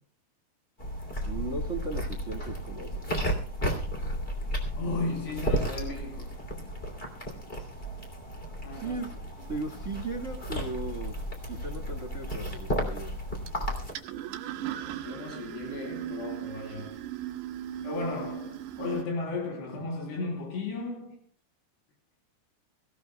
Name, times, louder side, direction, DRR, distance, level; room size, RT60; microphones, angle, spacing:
sound 1, 0.8-13.9, equal, 15° left, 2.3 m, -33 dB
voice 1, 1.2-3.3 8.7-9.2 9.5-11.2 11.5-13.1, right 3 dB, 60° right, 0.7 m, -37 dB
voice 2, 4.8-6.3 8.6-9.0 14.9-17.0 17.8-21.2, left 3 dB, 80° left, 5.1 m, -35 dB
sound 2, 9.4-19.0, right 10 dB, 85° right, 3.4 m, -40 dB
24.5 x 16.0 x 2.2 m
omnidirectional pair, 4.8 m